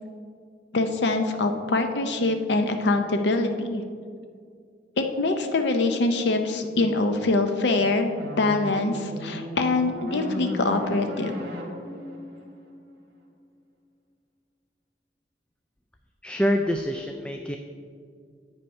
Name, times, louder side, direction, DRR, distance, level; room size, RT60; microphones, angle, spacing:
voice 1, 0.7-3.8 5.0-11.3, left 2 dB, 65° left, 6 dB, 0.6 m, -24 dB
sound 1, 8.2-13.3, left 1 dB, 60° right, 1.5 m, -36 dB
voice 2, 16.2-17.6, equal, 5° left, 5 dB, 0.3 m, -26 dB
8.7 x 5.5 x 5.4 m, 2.2 s
head